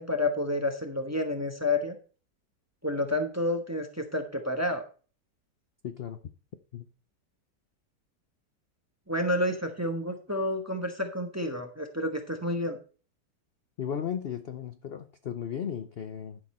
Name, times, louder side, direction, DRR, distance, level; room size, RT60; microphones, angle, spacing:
voice 1, 0.0-1.9 2.8-4.8 9.1-12.8, left 1 dB, 10° right, 5 dB, 0.9 m, -29 dB
voice 2, 5.8-6.2 6.7-6.9 13.8-16.4, left 8 dB, 65° left, 9 dB, 0.6 m, -35 dB
11.5 x 6.5 x 4.3 m, 0.38 s
omnidirectional pair, 1.9 m